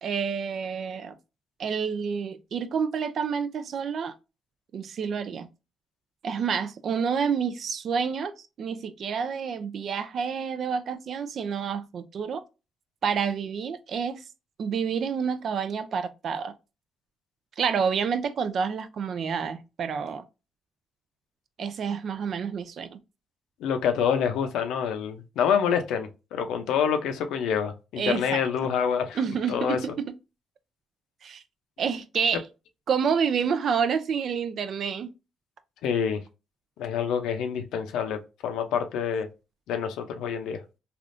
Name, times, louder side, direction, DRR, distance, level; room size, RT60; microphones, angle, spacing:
voice 1, 0.0-1.2 1.6-4.1 4.7-5.5 6.2-12.4 13.0-14.2 14.6-16.5 17.6-20.2 21.6-23.0 28.0-28.4 29.1-30.1 31.2-31.4 31.8-32.4 32.9-35.1, right 6 dB, 60° right, 0.4 m, -28 dB
voice 2, 23.6-29.2 29.5-29.8 35.8-36.2 36.8-39.3 39.7-40.6, left 7 dB, 90° left, 0.6 m, -27 dB
3.4 x 2.4 x 2.5 m
cardioid pair, 90°, 0 cm